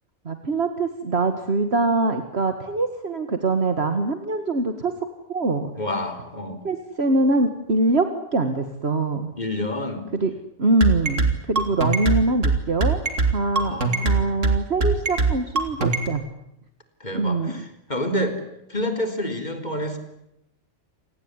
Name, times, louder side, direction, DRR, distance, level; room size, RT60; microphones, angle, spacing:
voice 1, 0.3-4.9 5.3-5.7 6.6-9.3 10.1-10.3 10.6-16.2 17.1-17.6, right 2 dB, 60° right, 7 dB, 2.1 m, -23 dB
voice 2, 5.8-6.6 9.4-10.1 13.6-14.5 17.0-18.4 18.7-20.0, left 1 dB, 35° left, 6 dB, 4.1 m, -28 dB
sound 1, 10.8-16.1, right 4 dB, 80° right, 3.5 m, -21 dB
29.0 x 18.5 x 9.8 m, 0.83 s
omnidirectional pair, 1.2 m